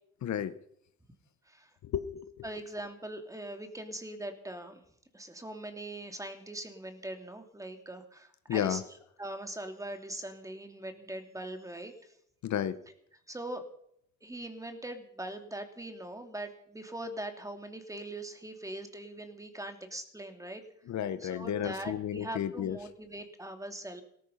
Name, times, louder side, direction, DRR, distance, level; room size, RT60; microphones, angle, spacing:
voice 1, 0.2-0.5 1.8-2.3 8.5-8.8 12.4-12.8 20.9-22.8, left 10 dB, 65° left, 12 dB, 1.1 m, -32 dB
voice 2, 2.4-4.8 5.1-8.8 9.2-12.1 13.3-13.6 14.2-20.6 21.2-24.0, right 1 dB, 10° right, 6 dB, 2.6 m, -41 dB
18.0 x 14.0 x 5.7 m, 0.71 s
cardioid pair, 90°, 30 cm